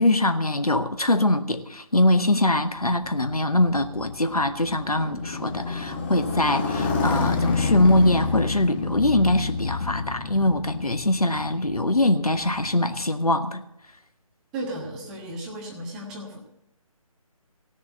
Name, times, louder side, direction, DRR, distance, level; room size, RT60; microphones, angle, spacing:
voice 1, 0.0-13.6, left 1 dB, 80° left, 8 dB, 1.3 m, -22 dB
Motorcycle, 2.8-12.7, left 4 dB, 20° left, 1.7 m, -29 dB
voice 2, 14.5-16.4, right 1 dB, ahead, -2 dB, 0.4 m, -34 dB
16.5 x 7.2 x 7.3 m, 0.84 s
figure-of-eight pair, 150°, 19 cm